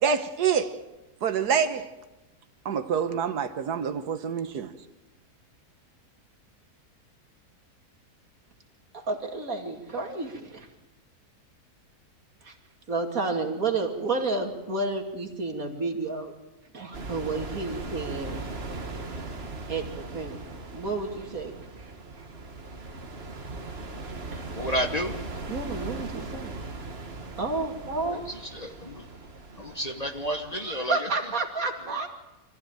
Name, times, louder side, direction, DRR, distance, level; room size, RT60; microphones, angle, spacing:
voice 1, 0.0-0.8 1.2-1.9 2.6-4.7, right 7 dB, 80° right, 9 dB, 1.6 m, -26 dB
voice 2, 9.1-10.7 12.4-12.5 12.9-16.3 16.7-18.5 19.7-20.4 20.7-21.5 24.3-24.4 25.5-26.6 27.4-28.2 30.6-32.1, right 3 dB, 60° right, 3 dB, 2.8 m, -30 dB
sound 1, 16.9-30.9, right 3 dB, 40° right, 1.8 m, -39 dB
voice 3, 24.6-25.3 28.0-29.1 29.6-31.1, equal, 25° left, 6 dB, 1.1 m, -31 dB
25.0 x 15.0 x 8.9 m, 1.0 s
omnidirectional pair, 1.7 m